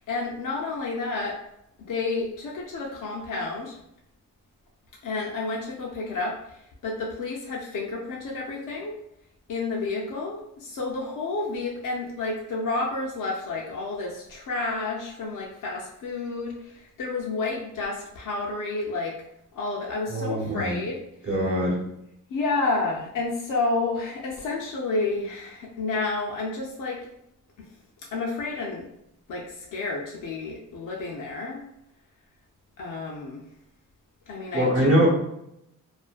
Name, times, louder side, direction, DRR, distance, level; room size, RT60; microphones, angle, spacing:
voice 1, 0.0-1.4 1.9-3.8 5.0-9.0 9.5-19.3 19.5-21.0 22.3-27.1 27.6-27.7 28.1-28.9 29.3-31.6 32.8-33.4 34.3-35.0, left 3 dB, 70° left, -2 dB, 0.5 m, -30 dB
voice 2, 20.1-20.8 21.2-21.9 34.5-35.1, right 1 dB, 45° right, -2 dB, 0.8 m, -23 dB
2.4 x 2.1 x 2.4 m, 0.80 s
cardioid pair, 85°, 33 cm